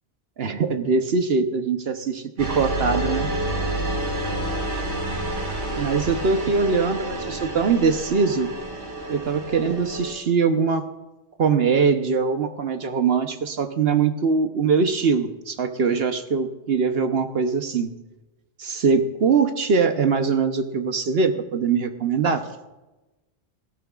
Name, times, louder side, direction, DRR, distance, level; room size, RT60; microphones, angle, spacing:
voice 1, 0.4-3.3 5.8-8.5 9.1-10.9 11.4-17.9 18.6-22.5, right 5 dB, 60° right, 7 dB, 1.1 m, -22 dB
sound 1, 2.4-10.1, right 1 dB, 80° right, 2.7 m, -29 dB
18.5 x 16.5 x 2.4 m, 1.1 s
omnidirectional pair, 1.2 m